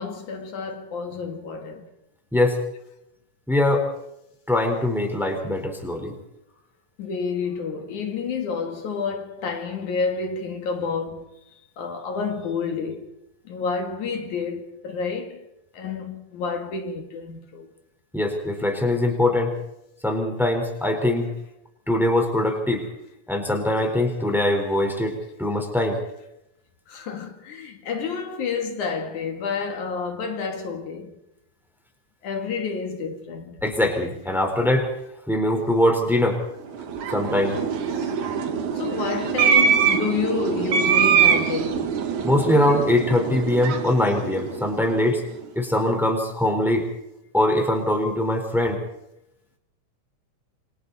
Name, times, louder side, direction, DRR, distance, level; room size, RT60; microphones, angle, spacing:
voice 1, 0.0-1.9 7.0-11.4 11.8-13.1 13.5-15.5 15.7-17.7 26.9-31.2 32.2-33.6 37.9-38.1 38.7-42.0, left 5 dB, 70° left, 3.4 m, -29 dB
voice 2, 3.5-3.9 4.5-6.1 18.1-19.5 20.0-21.3 21.9-22.8 23.3-26.0 33.6-34.9 35.3-36.4 37.1-37.6 42.2-45.2 45.6-46.9 47.3-48.8, left 1 dB, ahead, 3.9 m, -22 dB
sound 1, 36.7-45.2, right 7 dB, 70° right, 3.0 m, -23 dB
28.5 x 24.5 x 4.2 m
omnidirectional pair, 3.6 m